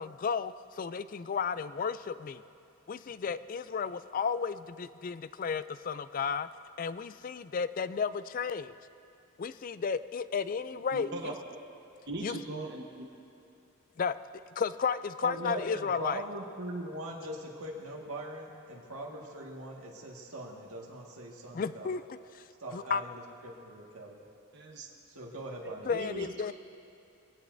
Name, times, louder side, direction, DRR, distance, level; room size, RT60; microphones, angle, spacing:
voice 1, 0.0-2.4 2.9-6.5 6.8-8.7 9.4-11.3 12.2-12.4 14.0-14.2 14.6-16.2 21.5-22.0 22.3-22.4 22.7-23.0 25.9-26.5, left 6 dB, 40° left, 14 dB, 0.3 m, -33 dB
voice 2, 10.7-11.3 12.1-13.1 24.5-24.9 25.6-26.3, right 2 dB, 50° right, -1 dB, 1.2 m, -40 dB
voice 3, 15.2-22.0 22.6-24.2 25.1-25.9, right 1 dB, 90° right, -2 dB, 1.8 m, -41 dB
23.0 x 17.0 x 2.7 m, 2.6 s
head